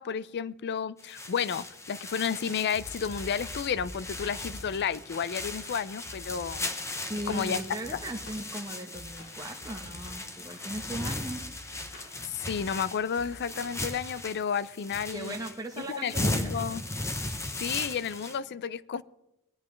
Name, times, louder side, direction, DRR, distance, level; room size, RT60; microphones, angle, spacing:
voice 1, 0.0-6.7 7.3-7.6 7.9-8.0 12.2-15.3 15.9-16.8 17.6-19.0, left 7 dB, 50° left, 18 dB, 0.4 m, -32 dB
sound 1, 1.0-18.4, left 2 dB, 15° left, 0.8 m, -37 dB
sound 2, 2.7-6.8 7.0-8.5 8.8-10.3 10.6-12.1 12.4-13.4, left 1 dB, 65° left, 4.3 m, -47 dB
voice 2, 6.9-11.4 15.1-16.5, right 1 dB, 15° right, 2 dB, 1.0 m, -38 dB
sound 3, 7.0-8.8 9.1-13.8 14.1-14.2, left 2 dB, 85° left, 4.1 m, -52 dB
20.0 x 10.5 x 3.2 m, 0.90 s
head